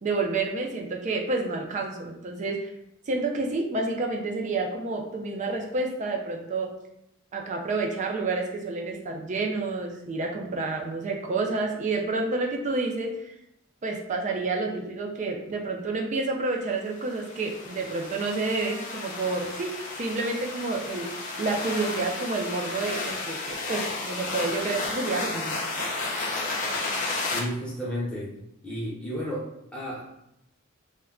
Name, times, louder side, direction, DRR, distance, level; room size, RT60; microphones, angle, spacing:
voice 1, 0.0-2.7 3.1-6.7 7.3-13.3 13.8-19.7 20.0-21.1 21.4-25.6, right 3 dB, 35° right, 2 dB, 0.4 m, -29 dB
sound 1, 17.0-27.4, left 3 dB, 40° left, 0.5 m, -33 dB
voice 2, 27.3-28.3 28.6-29.5 29.7-30.0, equal, 5° left, -6 dB, 0.8 m, -32 dB
2.2 x 2.2 x 3.6 m, 0.81 s
head